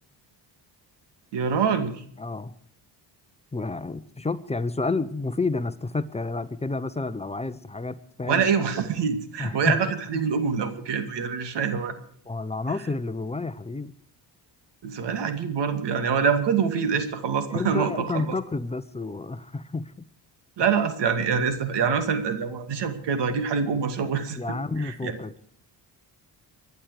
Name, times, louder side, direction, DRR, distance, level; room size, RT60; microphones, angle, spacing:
voice 1, 1.3-2.0 8.3-12.0 14.8-18.4 20.6-24.4 24.8-25.2, right 6 dB, 75° right, 9 dB, 2.5 m, -25 dB
voice 2, 2.2-2.5 3.5-8.4 9.4-9.8 10.1-10.3 12.3-13.9 17.5-19.9 24.4-25.4, left 3 dB, 15° left, 12 dB, 1.0 m, -30 dB
25.5 x 11.0 x 4.9 m, 0.62 s
cardioid pair, 100°, 42 cm